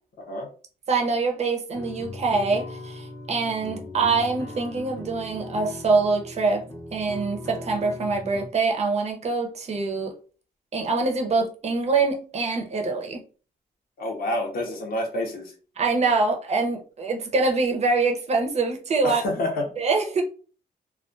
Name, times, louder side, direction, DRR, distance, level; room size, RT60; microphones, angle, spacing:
voice 1, 0.9-6.6 6.9-10.1 10.7-13.2 15.8-19.2 19.8-20.2, right 4 dB, 45° right, 0.5 m, -24 dB
sound 1, 1.7-8.5, left 2 dB, 20° left, 0.4 m, -39 dB
voice 2, 14.0-15.5 19.0-19.7, left 1 dB, 75° left, 0.6 m, -28 dB
2.2 x 2.2 x 2.5 m
wide cardioid pair, 145°, 16 cm